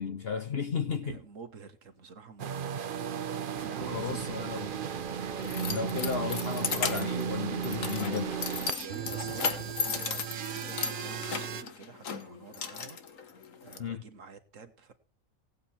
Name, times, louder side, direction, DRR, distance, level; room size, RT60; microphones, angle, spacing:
voice 1, 0.0-1.1 3.9-4.7 5.7-8.4 13.8-14.0, left 6 dB, 55° left, 1.0 m, -34 dB
voice 2, 1.0-2.9 3.6-4.8 8.8-13.3 13.6-14.9, right 5 dB, 70° right, 1.9 m, -48 dB
sound 1, 2.4-11.6, right 8 dB, 50° right, 0.8 m, -35 dB
sound 2, 3.8-10.5, left 3 dB, 30° left, 1.4 m, -51 dB
Keys jangling, 4.7-13.8, left 6 dB, 75° left, 1.6 m, -36 dB
17.5 x 8.6 x 4.3 m
omnidirectional pair, 1.4 m